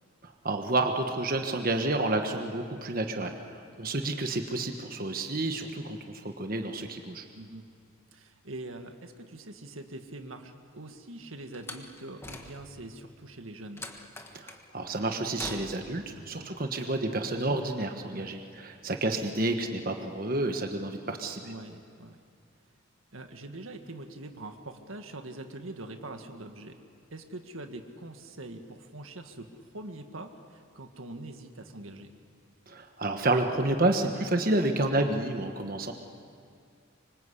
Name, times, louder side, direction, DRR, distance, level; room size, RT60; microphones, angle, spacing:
voice 1, 0.2-7.2 14.3-21.5 32.7-35.9, right 2 dB, 45° right, 5 dB, 1.3 m, -30 dB
voice 2, 8.1-13.8 16.1-16.6 18.1-18.3 21.4-22.2 23.1-26.8 27.1-29.5 29.7-32.1, right 2 dB, 85° right, 6 dB, 1.8 m, -43 dB
Slam, 11.5-12.9 13.8-14.7 15.4-16.0, left 2 dB, 10° left, 1.5 m, -43 dB
25.5 x 25.0 x 8.3 m, 2.4 s
head